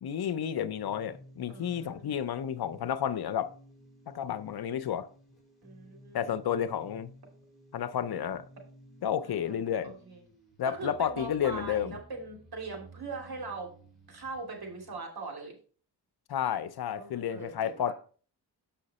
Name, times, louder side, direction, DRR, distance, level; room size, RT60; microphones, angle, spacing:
voice 1, 0.0-3.5 4.1-5.1 6.1-7.1 7.7-8.4 9.0-9.9 10.6-12.0 16.3-17.9, left 9 dB, 65° left, 0.7 m, -31 dB
sound 1, 0.7-15.0, right 1 dB, ahead, 4.3 m, -55 dB
voice 2, 1.5-2.1 5.6-6.4 9.2-10.2 10.6-13.7 14.1-15.5 17.0-17.9, right 3 dB, 65° right, 3.0 m, -41 dB
7.7 x 5.7 x 4.2 m
cardioid pair, 95°, 40 cm